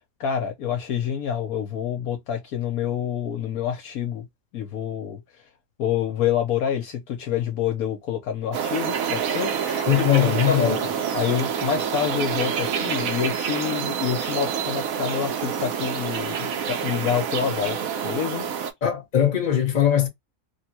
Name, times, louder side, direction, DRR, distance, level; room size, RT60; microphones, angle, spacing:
voice 1, 0.2-4.3 4.5-5.2 5.8-9.5 11.1-18.5, left 9 dB, 70° left, 1.1 m, -27 dB
sound 1, 8.5-18.7, right 7 dB, 65° right, 1.0 m, -27 dB
voice 2, 9.7-11.0 18.8-20.1, left 9 dB, 35° left, 1.1 m, -21 dB
3.2 x 2.2 x 2.8 m
omnidirectional pair, 1.7 m